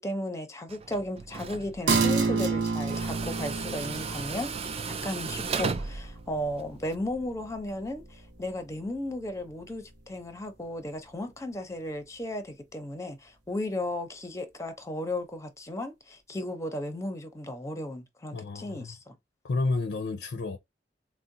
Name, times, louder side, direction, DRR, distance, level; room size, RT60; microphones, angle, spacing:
voice 1, 0.0-19.2, left 1 dB, 15° left, 0.6 m, -35 dB
Tools, 0.7-6.9, right 5 dB, 35° right, 0.4 m, -36 dB
sound 1, 1.9-8.9 9.3-9.4, right 4 dB, 80° right, 0.7 m, -31 dB
voice 2, 18.3-19.0 19.4-20.6, left 3 dB, 75° left, 0.5 m, -30 dB
3.7 x 2.0 x 2.6 m
head